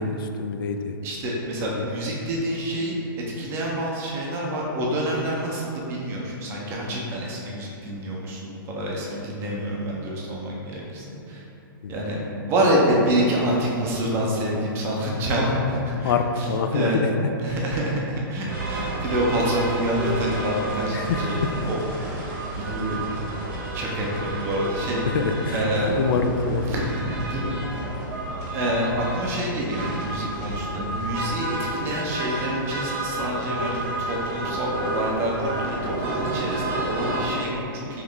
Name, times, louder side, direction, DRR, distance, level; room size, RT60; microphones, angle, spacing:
voice 1, 0.0-1.0 1.6-1.9 11.8-12.2 16.0-17.6 20.9-21.5 25.1-26.9, left 4 dB, 65° left, 6 dB, 0.4 m, -26 dB
voice 2, 1.0-3.0 3.4-11.4 11.9-12.2 12.5-16.1 16.7-17.0 17.4-21.4 21.7-21.8 22.2-23.3 23.7-25.0 25.5-25.9 26.7-27.6 28.5-38.0, right 1 dB, 20° right, -3 dB, 0.5 m, -27 dB
sound 1, 18.5-37.3, right 2 dB, 40° right, 0.9 m, -30 dB
3.3 x 3.1 x 3.8 m, 2.7 s
hypercardioid pair, 155°, 12 cm